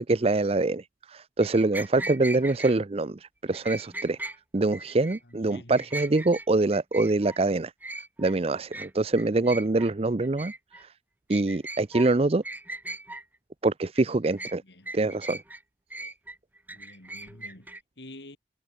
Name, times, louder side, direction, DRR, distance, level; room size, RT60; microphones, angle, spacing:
voice 1, 0.0-4.2 4.5-7.7 8.2-10.5 11.3-12.4 13.6-14.6 14.9-15.4, right 2 dB, 35° right, 0.6 m, -25 dB
sound 1, 1.4-2.8 3.5-4.4 4.7-5.2 5.5-6.5 6.7-7.4 7.8-8.3 8.7-8.9 9.2-9.9 10.2-10.8 11.3-12.1 12.4-13.2 13.8-14.6 14.9-15.6 15.9-17.8, right 2 dB, 10° right, 1.1 m, -38 dB
voice 2, 5.2-5.8 14.6-14.9 16.7-17.7 18.0-18.4, left 1 dB, 75° left, 3.6 m, -48 dB
head